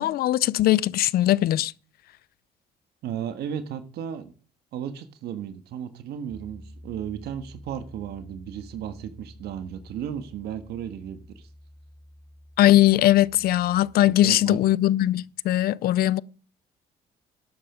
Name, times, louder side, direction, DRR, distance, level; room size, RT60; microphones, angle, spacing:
voice 1, 0.0-1.7 12.6-16.2, left 14 dB, 65° left, 0.6 m, -20 dB
voice 2, 3.0-4.3 4.7-11.5 14.2-14.6, right 9 dB, 75° right, 1.5 m, -34 dB
Piano, 6.3-14.0, equal, 10° right, 1.6 m, -48 dB
12.0 x 8.7 x 5.1 m
cardioid pair, 110°, 17 cm